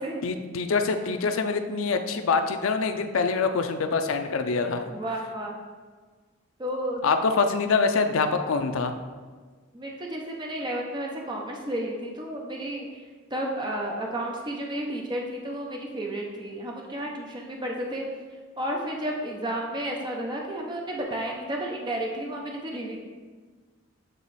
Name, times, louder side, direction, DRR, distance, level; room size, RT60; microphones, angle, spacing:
voice 1, 0.2-4.9 7.0-9.0, left 4 dB, 70° left, 7 dB, 0.4 m, -25 dB
voice 2, 4.9-5.6 6.6-7.0 9.7-12.9 13.3-18.0 18.6-23.0, right 1 dB, 20° right, 0 dB, 0.6 m, -32 dB
7.6 x 3.1 x 4.1 m, 1.5 s
head